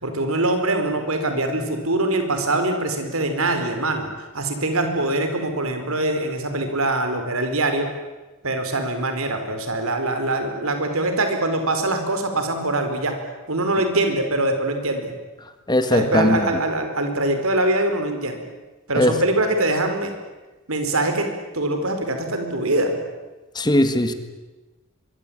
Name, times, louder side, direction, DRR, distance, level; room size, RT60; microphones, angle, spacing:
voice 1, 0.0-4.1 4.3-7.9 8.4-13.1 13.5-15.1 15.9-18.4 18.9-20.1 20.7-21.3 21.5-23.0, right 2 dB, 80° right, 6 dB, 4.7 m, -23 dB
voice 2, 15.7-16.4 19.0-19.2 23.6-24.1, left 1 dB, 20° left, 9 dB, 1.8 m, -19 dB
24.0 x 23.5 x 8.9 m, 1.1 s
head